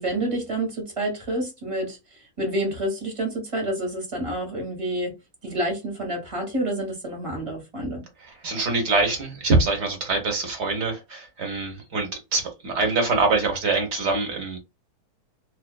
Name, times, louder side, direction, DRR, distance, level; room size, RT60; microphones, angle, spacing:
voice 1, 0.0-2.0 2.4-5.1 5.4-8.0, right 1 dB, 25° right, 1.0 m, -28 dB
voice 2, 8.4-14.6, right 3 dB, 50° right, 1.0 m, -24 dB
2.6 x 2.4 x 2.2 m
omnidirectional pair, 1.8 m